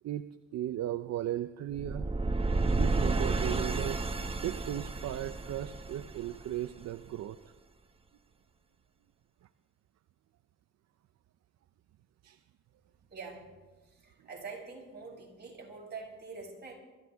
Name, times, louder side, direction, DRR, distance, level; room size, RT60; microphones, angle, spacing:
voice 1, 0.5-2.1 2.7-4.0 4.4-7.4 12.2-12.4, right 12 dB, 60° right, 11 dB, 0.6 m, -36 dB
sound 1, 1.7-6.8, right 3 dB, 20° right, 1.1 m, -31 dB
voice 2, 13.1-13.5 13.8-16.8, right 4 dB, 35° right, -3 dB, 6.7 m, -45 dB
24.0 x 14.0 x 3.5 m, 1.2 s
cardioid pair, 90°, 30 cm